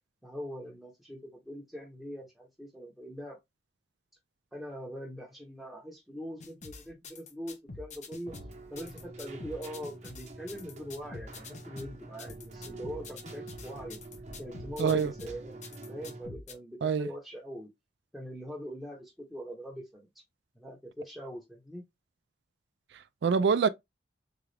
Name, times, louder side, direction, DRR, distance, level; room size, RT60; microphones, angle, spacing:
voice 1, 0.2-3.4 4.5-8.3 8.7-14.0 14.4-15.6 15.9-17.7 18.1-20.2 20.5-21.8, equal, ahead, 0.7 m, -42 dB
sound 1, 6.4-16.5, left 3 dB, 40° left, 0.7 m, -46 dB
Keyboard (musical), 8.3-16.3, right 2 dB, 40° right, 0.8 m, -46 dB
voice 2, 14.8-15.1 16.8-17.1 22.9-23.7, right 6 dB, 70° right, 0.3 m, -26 dB
3.9 x 2.3 x 3.2 m
head